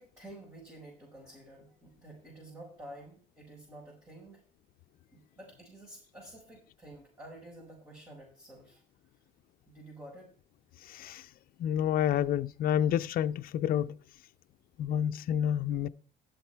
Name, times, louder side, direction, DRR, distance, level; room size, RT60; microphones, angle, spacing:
voice 1, 0.0-4.4 5.1-8.8 9.7-10.3, right 1 dB, 15° right, 5.7 m, -50 dB
voice 2, 10.8-11.3 11.6-14.0 14.8-15.9, left 10 dB, 60° left, 0.5 m, -29 dB
12.5 x 7.8 x 4.5 m
cardioid pair, 110°, 17 cm